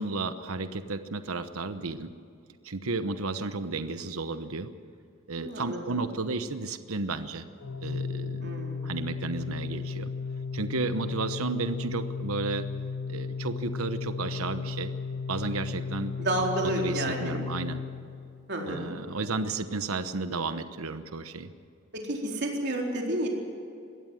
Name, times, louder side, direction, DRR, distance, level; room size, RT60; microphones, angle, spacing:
voice 1, 0.0-2.1 2.6-4.7 5.3-7.4 7.8-8.5 8.8-10.1 10.5-12.7 13.1-14.9 15.3-16.2 16.8-17.8 18.7-21.5, right 3 dB, 85° right, 10 dB, 1.0 m, -33 dB
voice 2, 5.4-6.0 8.4-8.9 16.2-17.4 18.5-19.0 21.9-23.3, right 1 dB, 50° right, 0 dB, 4.1 m, -30 dB
Organ, 7.6-18.5, left 5 dB, 85° left, 0.8 m, -35 dB
22.0 x 16.5 x 7.8 m, 2.4 s
head